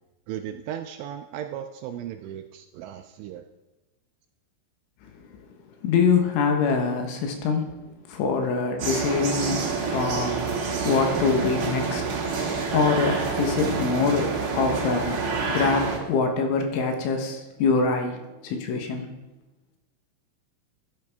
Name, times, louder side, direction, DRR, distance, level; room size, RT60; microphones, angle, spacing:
voice 1, 0.3-3.4, right 10 dB, 85° right, 6 dB, 2.7 m, -36 dB
voice 2, 5.8-7.8 8.1-19.1, left 5 dB, 75° left, 4 dB, 3.4 m, -25 dB
sound 1, 8.8-16.0, right 4 dB, 60° right, 2.0 m, -27 dB
14.0 x 9.4 x 3.5 m, 1.1 s
omnidirectional pair, 5.8 m